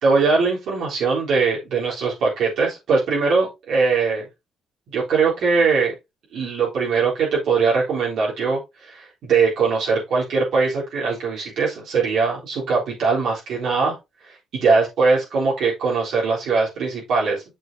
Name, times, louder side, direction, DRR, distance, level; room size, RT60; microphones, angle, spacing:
voice 1, 0.0-4.3 4.9-5.9 6.3-14.0 14.2-17.4, right 4 dB, 75° right, -6 dB, 4.0 m, -21 dB
8.9 x 6.4 x 2.8 m, 0.23 s
cardioid pair, 90°, 0 cm